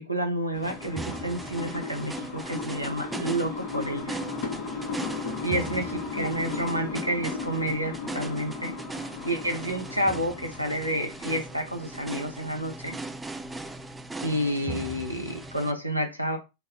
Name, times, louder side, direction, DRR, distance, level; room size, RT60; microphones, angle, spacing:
voice 1, 0.0-4.2 5.4-8.8 9.2-13.0 14.2-16.4, equal, 90° right, 0.7 m, -30 dB
sound 1, 0.5-15.6, left 5 dB, 45° left, 0.9 m, -38 dB
sound 2, 0.6-15.7, right 3 dB, 10° right, 0.3 m, -39 dB
3.4 x 2.2 x 3.6 m
figure-of-eight pair, 90°, 0 cm